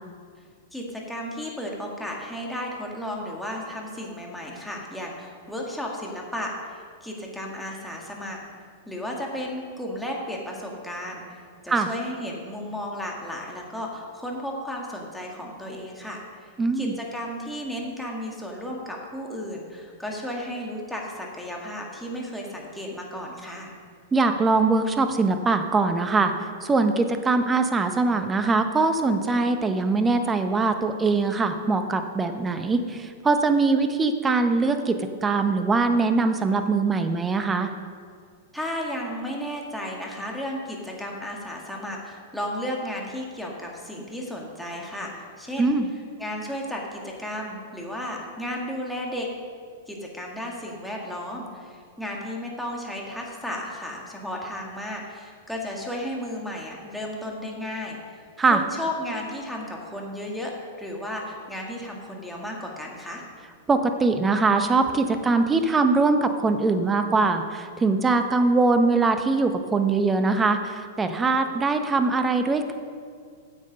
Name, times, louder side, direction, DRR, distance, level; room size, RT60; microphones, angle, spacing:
voice 1, 0.7-8.4 8.9-16.5 16.8-23.7 38.5-45.7 46.2-49.3 49.9-58.2 58.5-60.5 60.8-63.2, left 1 dB, ahead, -2 dB, 2.1 m, -34 dB
voice 2, 16.6-16.9 24.1-37.7 45.6-45.9 58.4-58.6 63.7-72.7, right 3 dB, 15° right, 8 dB, 0.9 m, -22 dB
9.7 x 7.6 x 5.3 m, 2.1 s
hypercardioid pair, 110°, 0 cm